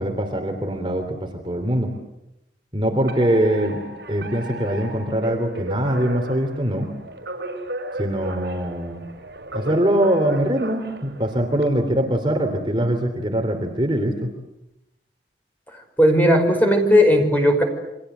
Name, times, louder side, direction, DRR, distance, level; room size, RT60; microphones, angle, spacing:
voice 1, 0.0-1.9 2.7-6.9 7.9-9.0 9.5-14.3, right 1 dB, 30° right, 4 dB, 3.1 m, -23 dB
Alarm, 3.1-11.6, right 1 dB, 75° right, 5.4 m, -34 dB
voice 2, 16.0-17.6, equal, 10° left, 4 dB, 5.3 m, -16 dB
30.0 x 24.5 x 8.1 m, 0.90 s
head